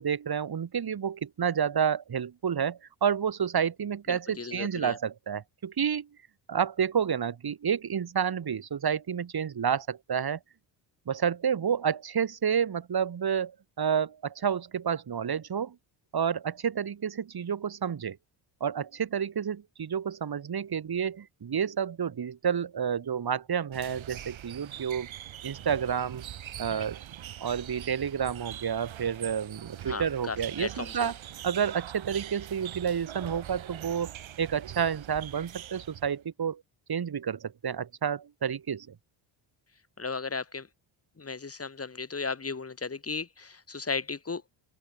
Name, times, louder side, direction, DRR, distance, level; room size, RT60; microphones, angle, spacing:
voice 1, 0.0-6.1 6.5-10.4 11.1-15.7 16.1-18.2 18.6-25.1 25.4-26.2 26.6-27.0 27.4-31.1 31.4-34.1 34.4-36.6 36.9-38.9, right 7 dB, 50° right, 6.8 m, -30 dB
voice 2, 4.1-5.0 26.7-26.9 29.9-31.1 40.0-40.7 41.2-44.4, left 4 dB, 30° left, 6.3 m, -35 dB
sound 1, 23.7-36.2, right 11 dB, 70° right, 7.9 m, -43 dB
open air
cardioid pair, 90°, 48 cm